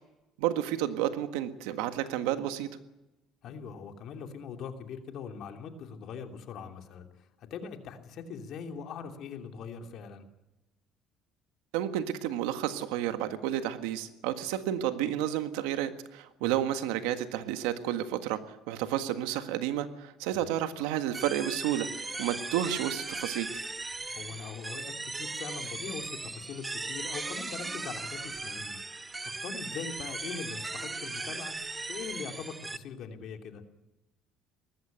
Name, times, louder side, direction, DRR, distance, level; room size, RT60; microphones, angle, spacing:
voice 1, 0.4-2.7 11.7-23.6, right 11 dB, 90° right, 9 dB, 1.6 m, -31 dB
voice 2, 3.4-10.3 16.4-16.5 20.3-20.5 24.1-28.8 29.2-31.6 31.9-33.6, left 6 dB, 60° left, 5 dB, 2.8 m, -42 dB
sound 1, 21.1-32.8, right 3 dB, 20° right, 1.0 m, -38 dB
19.5 x 14.5 x 9.2 m, 0.99 s
cardioid pair, 105°, 0 cm